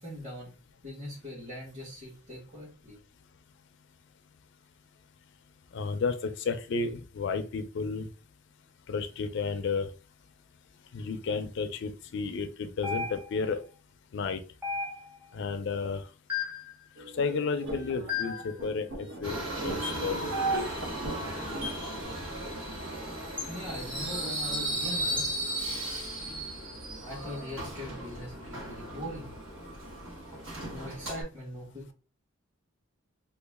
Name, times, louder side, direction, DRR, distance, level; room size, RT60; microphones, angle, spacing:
voice 1, 0.0-0.5 0.8-3.0 15.3-15.4 23.5-25.2 26.2-26.4 27.0-29.3 30.7-31.9, equal, 30° right, -10 dB, 1.5 m, -41 dB
voice 2, 5.7-8.1 8.9-9.9 10.9-13.6 14.1-14.4 15.3-16.0 17.2-20.3, left 4 dB, 60° left, 9 dB, 0.4 m, -32 dB
sound 1, 12.8-13.5 14.6-15.3 16.3-16.7 18.1-18.5 19.8-20.1 21.6-21.9 23.4-23.6 25.2-25.4, left 6 dB, 10° right, 0.8 m, -35 dB
sound 2, 17.0-22.0, right 2 dB, 60° right, 0.8 m, -37 dB
Subway metro underground, 19.2-31.2, right 1 dB, 75° right, 1.4 m, -36 dB
3.0 x 2.4 x 3.4 m, 0.35 s
head